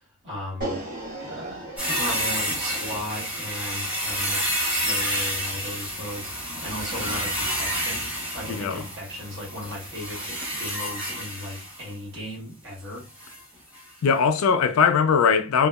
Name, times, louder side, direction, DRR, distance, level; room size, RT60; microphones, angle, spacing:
voice 1, 0.2-0.8 1.2-8.1 8.3-13.0, left 1 dB, 60° right, 1.5 m, -36 dB
sound 1, 0.6-6.8, right 1 dB, 40° right, 1.1 m, -39 dB
sound 2, 1.8-11.9 13.2-13.4 13.7-13.8, equal, 5° right, 1.1 m, -29 dB
voice 2, 8.5-8.8 14.0-15.7, left 6 dB, 85° left, 0.4 m, -20 dB
2.8 x 2.2 x 2.3 m
head